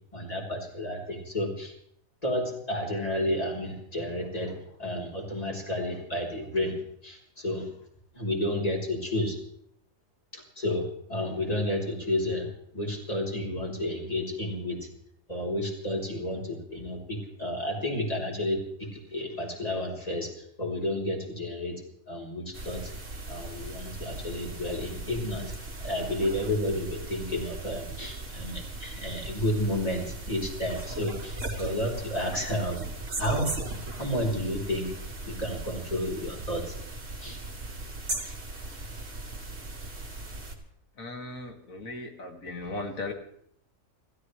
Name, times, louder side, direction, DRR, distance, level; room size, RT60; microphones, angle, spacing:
voice 1, 0.1-1.7 2.2-7.7 8.1-9.4 10.3-14.9 15.3-21.8 22.1-22.9 23.3-25.5 25.8-32.8 33.2-34.9 35.3-36.7 37.2-37.4, left 1 dB, 25° left, -1 dB, 4.1 m, -31 dB
sound 1, 22.5-40.6, right 2 dB, 60° right, 2.6 m, -38 dB
voice 2, 41.0-43.1, left 2 dB, 70° left, 3 dB, 2.5 m, -37 dB
29.5 x 13.5 x 3.3 m, 0.70 s
omnidirectional pair, 1.5 m